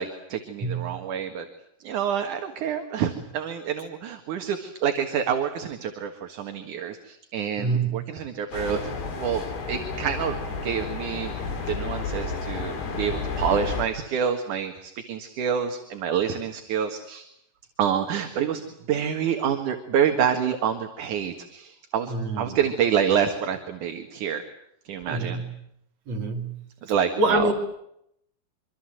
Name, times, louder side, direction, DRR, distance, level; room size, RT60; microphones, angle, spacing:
voice 1, 0.0-1.5 1.8-8.8 9.2-11.4 11.7-17.2 17.8-18.6 18.9-24.4 24.9-25.4 26.8-27.5, right 8 dB, 60° right, 6 dB, 2.9 m, -27 dB
voice 2, 0.6-1.0 7.6-8.0 22.1-22.6 25.1-25.6 26.1-26.6 27.2-27.5, right 2 dB, 45° right, 2 dB, 4.5 m, -26 dB
sound 1, 8.5-13.8, left 4 dB, 85° left, 5.4 m, -31 dB
25.5 x 25.0 x 7.8 m, 0.76 s
omnidirectional pair, 4.4 m